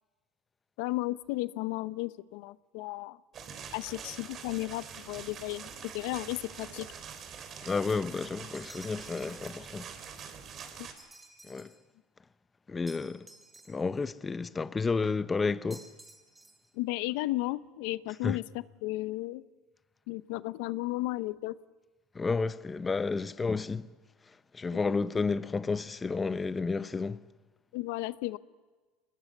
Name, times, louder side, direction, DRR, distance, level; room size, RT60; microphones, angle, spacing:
voice 1, 0.8-3.2 3.7-6.9 10.8-10.9 16.7-19.4 20.1-21.6 24.7-24.9 27.7-28.4, left 19 dB, 75° left, 0.6 m, -34 dB
sound 1, 3.3-10.9, right 7 dB, 40° right, 3.4 m, -45 dB
voice 2, 7.6-9.9 11.4-11.7 12.7-13.3 13.7-15.9 18.2-18.4 22.1-23.9 24.5-27.2, left 4 dB, 20° left, 0.7 m, -31 dB
sound 2, 8.5-9.5 11.0-11.8 12.9-14.0 15.7-16.7, right 2 dB, 10° right, 3.0 m, -54 dB
24.0 x 20.0 x 8.3 m
supercardioid pair, 115°, 0 cm